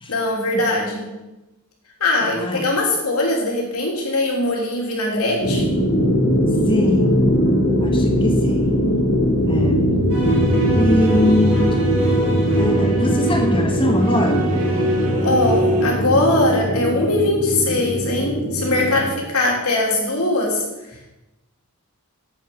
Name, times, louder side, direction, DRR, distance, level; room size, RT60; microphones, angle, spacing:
voice 1, 0.1-1.1 2.0-5.6 15.2-20.6, left 2 dB, 75° left, -2 dB, 3.2 m, -21 dB
voice 2, 2.2-2.7 6.7-7.2 7.8-8.8 9.5-9.9 10.8-11.7 12.5-14.5, left 1 dB, 25° left, 3 dB, 1.6 m, -22 dB
sound 1, 5.4-19.1, equal, 55° left, 2.9 m, -20 dB
sound 2, 10.1-15.9, right 1 dB, 80° right, 3.7 m, -25 dB
10.5 x 8.1 x 5.3 m, 0.99 s
head